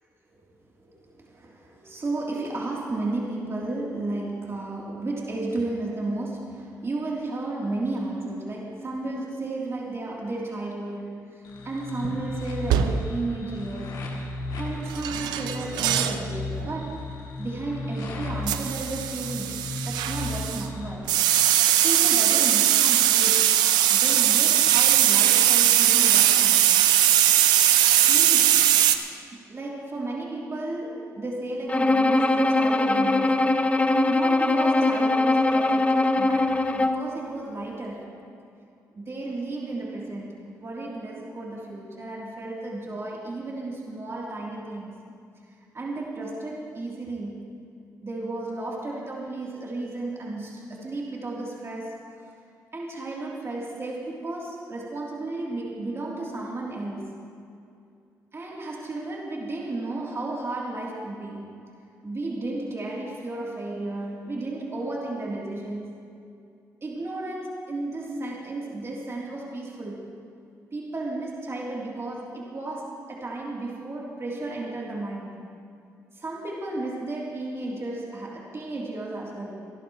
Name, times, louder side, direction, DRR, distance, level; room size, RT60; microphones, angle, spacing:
voice 1, 0.8-14.0 14.6-21.1 21.8-23.6 23.9-26.7 28.1-28.7 29.5-33.5 34.0-38.1 38.9-44.9 45.7-47.5 48.0-51.9 52.7-57.2 58.3-61.7 62.0-66.1 66.8-70.1 70.7-75.4 76.1-79.6, right 2 dB, 40° right, -4 dB, 3.3 m, -33 dB
sound 1, 11.5-21.0, left 2 dB, 80° left, 2.7 m, -35 dB
sound 2, 12.0-12.3 12.7-13.2 14.9-16.2 16.6-16.9 18.5-20.7 21.1-29.0, right 12 dB, 90° right, 0.6 m, -20 dB
Bowed string instrument, 31.7-37.1, left 2 dB, 20° left, 0.9 m, -21 dB
27.0 x 12.0 x 3.2 m, 2.4 s
supercardioid pair, 60°, 7 cm